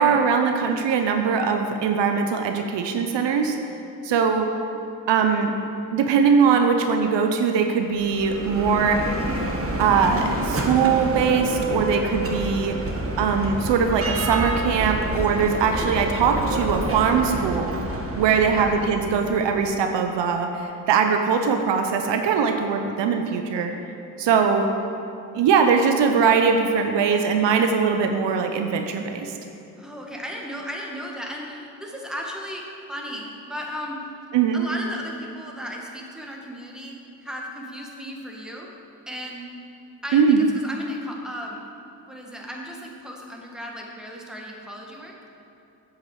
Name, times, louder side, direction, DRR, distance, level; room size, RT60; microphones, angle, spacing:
voice 1, 0.0-3.6 4.0-4.5 5.1-5.5 5.9-9.0 9.8-12.8 13.2-17.7 18.2-23.7 24.2-24.7 25.3-29.4 34.3-34.6 40.1-40.4, right 6 dB, 75° right, 5 dB, 0.8 m, -21 dB
Bell, 7.9-19.7, right 1 dB, 30° right, 1.4 m, -28 dB
voice 2, 29.8-32.6 32.9-34.0 34.5-36.9 37.2-38.7 39.1-39.4 40.0-41.6 42.1-45.1, equal, ahead, -1 dB, 1.8 m, -35 dB
8.2 x 5.0 x 7.6 m, 2.9 s
supercardioid pair, 50°, 43 cm